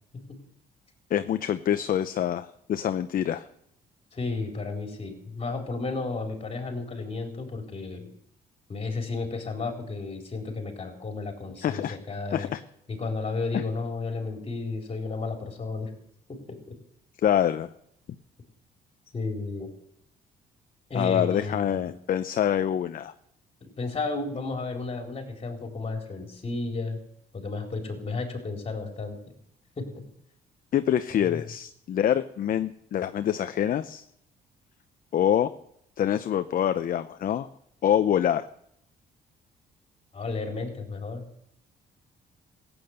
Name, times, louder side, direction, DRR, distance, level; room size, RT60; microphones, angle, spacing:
voice 1, 1.1-3.4 11.6-12.0 12.3-12.6 13.5-13.6 17.2-17.7 20.9-23.1 30.7-34.0 35.1-35.5 36.0-37.5 37.8-38.5, left 10 dB, 55° left, 10 dB, 0.7 m, -25 dB
voice 2, 4.1-8.1 8.7-12.5 12.9-15.9 16.3-16.7 19.1-19.7 20.9-21.9 23.6-27.0 27.3-29.2 29.8-30.0 31.3-31.4 40.1-41.2, left 3 dB, 35° left, 3 dB, 4.3 m, -33 dB
15.5 x 8.9 x 8.0 m, 0.74 s
cardioid pair, 90°, 17 cm